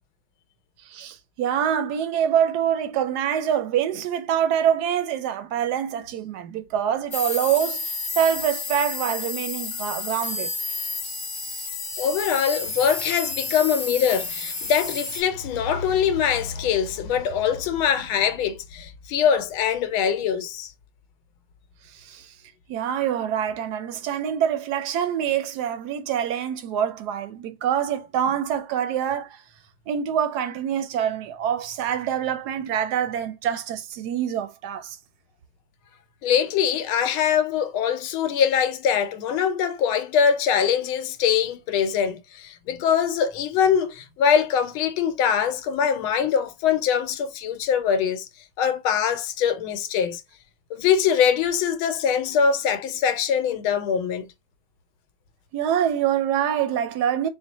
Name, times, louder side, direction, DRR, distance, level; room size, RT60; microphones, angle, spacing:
voice 1, 0.9-7.9 8.2-10.5 21.9-22.3 22.7-29.4 29.9-35.0 55.5-57.3, right 9 dB, 70° right, 1.0 m, -25 dB
sound 1, 7.1-15.2, left 3 dB, 35° left, 1.3 m, -31 dB
voice 2, 12.0-20.7 36.2-48.3 48.6-50.2 50.7-54.3, left 7 dB, 85° left, 1.5 m, -23 dB
4.5 x 2.1 x 4.0 m
omnidirectional pair, 2.2 m